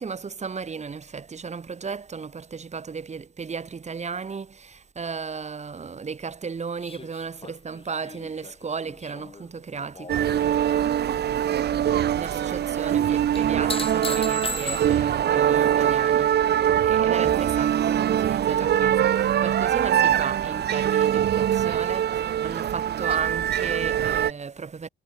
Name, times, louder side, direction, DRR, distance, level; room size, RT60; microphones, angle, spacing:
voice 1, 0.0-24.9, right 5 dB, 35° right, 3.2 m, -35 dB
sound 1, 6.8-10.3 10.6-11.2 13.3-15.2 17.8-17.9, left 4 dB, 30° left, 5.3 m, -37 dB
sound 2, 10.1-24.3, right 10 dB, 55° right, 0.9 m, -23 dB
cardioid pair, 90°, 20 cm